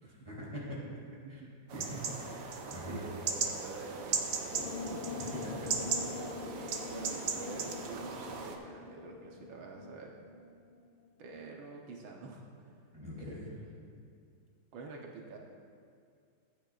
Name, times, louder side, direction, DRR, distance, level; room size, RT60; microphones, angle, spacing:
voice 1, 0.0-0.8 1.3-1.4 1.7-3.0 5.3-5.8 6.1-6.4 12.9-13.5, equal, 15° right, -6 dB, 2.9 m, -43 dB
sound 1, 1.7-8.6, right 5 dB, 65° right, 1.4 m, -37 dB
voice 2, 2.8-5.2 6.5-10.1 11.2-12.8 13.2-14.1 14.7-15.4, right 3 dB, 80° right, 0 dB, 1.7 m, -48 dB
sound 2, 4.5-10.9, left 5 dB, 70° left, 1.2 m, -44 dB
16.5 x 9.1 x 2.4 m, 2.2 s
omnidirectional pair, 2.2 m